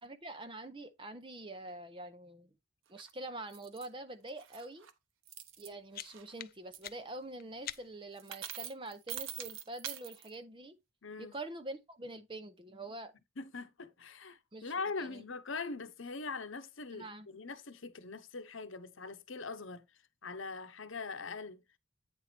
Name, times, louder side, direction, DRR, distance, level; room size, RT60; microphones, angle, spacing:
voice 1, 0.0-2.5 2.9-4.9 5.6-10.8 11.2-13.1 14.5-15.2 16.9-17.3, right 2 dB, 25° right, 0.7 m, -45 dB
sound 1, 3.0-3.1 3.5-3.9 4.3-4.9 5.3-5.7 6.1-6.4 6.7-6.9 7.7-7.8 8.2-10.3, right 10 dB, 70° right, 1.1 m, -44 dB
sound 2, 5.5-8.2, left 12 dB, 45° left, 0.4 m, -48 dB
voice 2, 11.0-11.3 13.4-21.6, left 4 dB, 65° left, 1.0 m, -42 dB
9.2 x 4.5 x 4.4 m
head